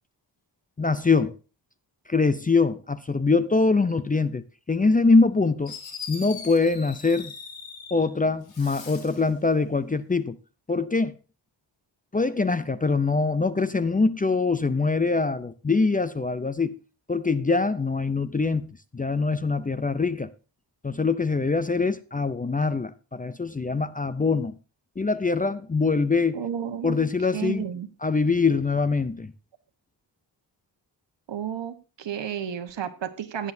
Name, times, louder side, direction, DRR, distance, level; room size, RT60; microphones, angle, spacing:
voice 1, 0.8-1.4 2.1-5.7 6.1-7.3 7.9-10.4 10.7-11.1 12.1-16.8 17.1-18.7 18.9-20.3 20.8-24.6 25.0-26.4 26.8-27.6 28.0-29.3, left 4 dB, 20° left, 0.5 m, -23 dB
Fireworks, 5.7-8.1 8.4-9.3, left 6 dB, 80° left, 3.2 m, -40 dB
voice 2, 26.3-27.0 27.3-27.9 31.3-33.5, right 9 dB, 75° right, 1.3 m, -32 dB
16.0 x 9.8 x 2.7 m
wide cardioid pair, 125°, 44 cm